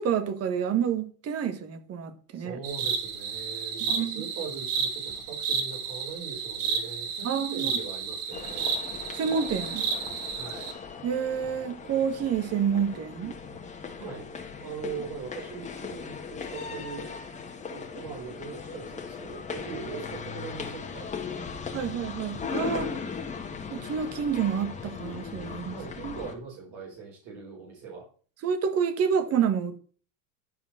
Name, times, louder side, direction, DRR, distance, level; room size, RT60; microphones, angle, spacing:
voice 1, 0.0-2.6 3.9-4.2 7.2-7.7 9.1-9.8 11.0-13.3 21.7-22.9 23.7-25.8 26.0-26.2 28.4-29.8, right 7 dB, 40° right, 1.7 m, -28 dB
voice 2, 2.3-8.8 10.3-10.8 14.0-14.2 14.6-17.1 17.7-21.5 22.7-23.0 25.7-28.0, right 5 dB, 55° right, 4.5 m, -41 dB
sound 1, 2.6-10.7, right 6 dB, 85° right, 2.3 m, -32 dB
sound 2, 8.3-26.3, left 5 dB, 20° left, 1.8 m, -38 dB
12.0 x 4.8 x 6.1 m
supercardioid pair, 125°, 39 cm